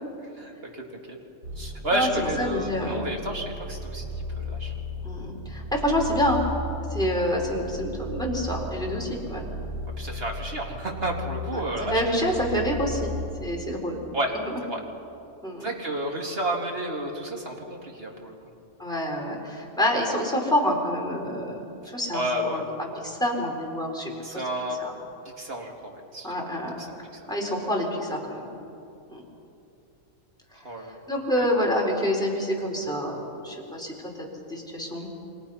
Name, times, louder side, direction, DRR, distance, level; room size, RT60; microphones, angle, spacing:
voice 1, 0.4-0.8 1.6-4.0 4.4-4.7 10.0-12.0 14.1-14.3 14.6-14.8 15.6-18.4 22.1-22.7 24.2-24.8 25.4-26.3 26.8-27.0 30.6-30.9 31.4-31.5, right 1 dB, 40° right, 0 dB, 2.9 m, -31 dB
sound 1, 1.4-13.1, left 1 dB, 65° right, 4.1 m, -35 dB
voice 2, 1.9-3.0 3.3-3.5 5.0-6.5 6.9-9.5 11.8-13.1 13.4-14.1 14.4-14.6 15.4-15.7 18.8-22.6 22.9-24.4 24.8-24.9 26.2-28.6 29.1-29.2 30.7-35.1, equal, 5° left, -1 dB, 4.3 m, -28 dB
29.0 x 24.5 x 5.8 m, 2.8 s
omnidirectional pair, 1.5 m